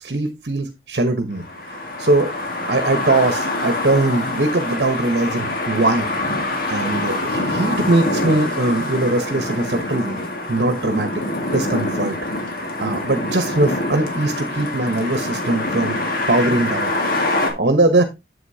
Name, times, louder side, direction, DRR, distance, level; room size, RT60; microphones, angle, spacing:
voice 1, 0.0-2.3 2.7-6.1 6.7-10.2 10.5-11.1 11.5-12.2 12.5-16.0 16.3-16.9 17.6-18.0, right 2 dB, 65° right, 7 dB, 1.1 m, -21 dB
sound 1, 1.3-17.5, left 2 dB, 55° left, 1.9 m, -25 dB
8.1 x 7.9 x 2.8 m, 0.22 s
head